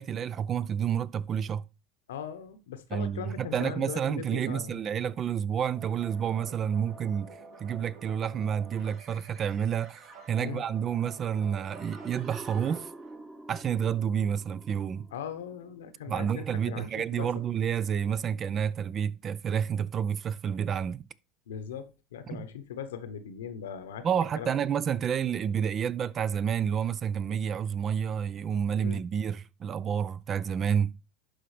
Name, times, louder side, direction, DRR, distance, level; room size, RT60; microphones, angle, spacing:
voice 1, 0.0-1.6 2.9-7.3 7.6-12.9 13.5-15.1 16.0-21.0 22.3-22.4 24.0-31.0, right 8 dB, 35° right, 0.4 m, -29 dB
voice 2, 2.1-4.8 10.4-10.6 15.1-17.3 21.5-24.1 24.4-24.5 28.8-29.0, left 8 dB, 85° left, 1.0 m, -39 dB
sound 1, 5.7-13.4, right 3 dB, 50° right, 2.2 m, -50 dB
sound 2, 11.7-16.4, right 2 dB, 15° right, 1.2 m, -47 dB
11.5 x 4.0 x 3.3 m
hypercardioid pair, 95°, 0 cm